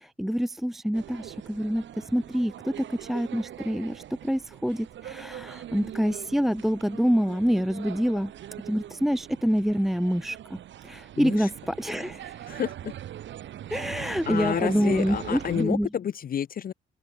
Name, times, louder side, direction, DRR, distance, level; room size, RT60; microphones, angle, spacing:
voice 1, 0.0-8.3 8.7-10.6 10.8-12.4 13.7-15.9, equal, ahead, 0.5 m, -26 dB
sound 1, 0.9-15.6, right 11 dB, 70° right, 2.0 m, -42 dB
voice 2, 11.2-11.5 12.5-12.9 14.3-16.7, left 9 dB, 45° left, 0.7 m, -29 dB
open air
cardioid pair, 90°, 20 cm